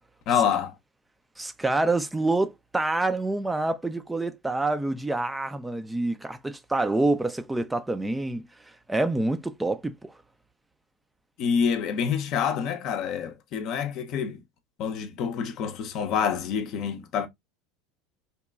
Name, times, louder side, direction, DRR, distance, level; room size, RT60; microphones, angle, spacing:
voice 1, 0.3-0.8 11.4-14.4 14.8-17.3, left 7 dB, 50° left, 0.6 m, -27 dB
voice 2, 1.4-10.1, right 2 dB, 10° right, 0.4 m, -27 dB
2.8 x 2.2 x 2.2 m
hypercardioid pair, 80°, 0 cm